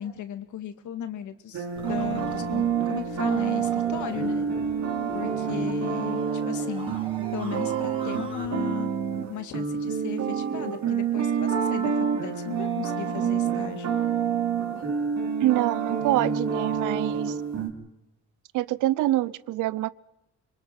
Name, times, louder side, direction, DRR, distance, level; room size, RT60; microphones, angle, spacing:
voice 1, 0.0-4.5 5.1-6.9 7.3-8.9 9.3-13.9, left 9 dB, 75° left, 9 dB, 2.1 m, -36 dB
sound 1, 1.5-17.7, right 7 dB, 65° right, 4.0 m, -28 dB
sound 2, 1.8-8.5, right 3 dB, 15° right, 5.2 m, -41 dB
voice 2, 15.4-17.3 18.5-19.9, right 15 dB, 90° right, 19 dB, 0.7 m, -25 dB
26.0 x 23.0 x 5.9 m, 0.86 s
cardioid pair, 90°, 30 cm